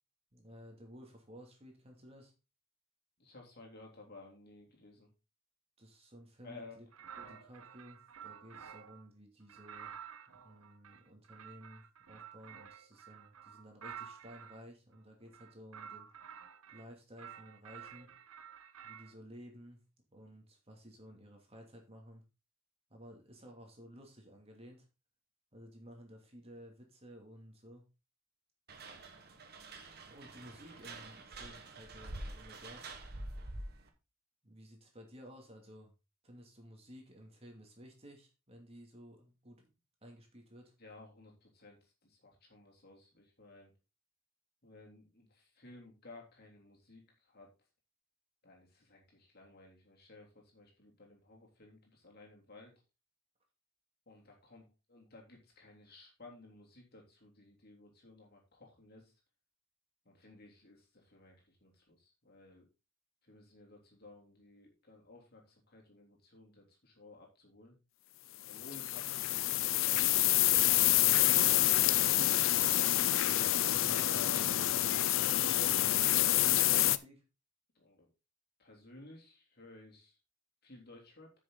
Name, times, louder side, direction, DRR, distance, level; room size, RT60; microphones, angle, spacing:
voice 1, 0.3-2.3 5.8-6.9 7.2-10.0 10.3-16.1 16.7-18.1 18.8-19.8 20.1-22.2 22.9-24.8 25.5-27.9 30.1-32.8 34.4-35.9 36.2-39.7 40.0-40.7 73.7-74.6 75.0-77.2, equal, 30° right, 2 dB, 2.6 m, -54 dB
voice 2, 3.2-5.1 6.4-6.8 7.2-7.3 40.8-43.7 44.6-47.5 48.4-52.7 54.1-59.1 60.0-62.7 63.2-67.8 68.5-70.3 77.7-78.1 78.6-80.2 80.6-81.3, left 2 dB, 45° left, -1 dB, 3.4 m, -56 dB
sound 1, 6.9-9.0 9.5-14.6 15.3-16.9 17.2-19.1, right 8 dB, 85° right, 0.8 m, -51 dB
sound 2, 28.7-33.9, right 2 dB, 50° right, 1.7 m, -47 dB
sound 3, 68.5-77.0, left 14 dB, 65° left, 0.5 m, -27 dB
10.0 x 6.4 x 4.0 m, 0.28 s
head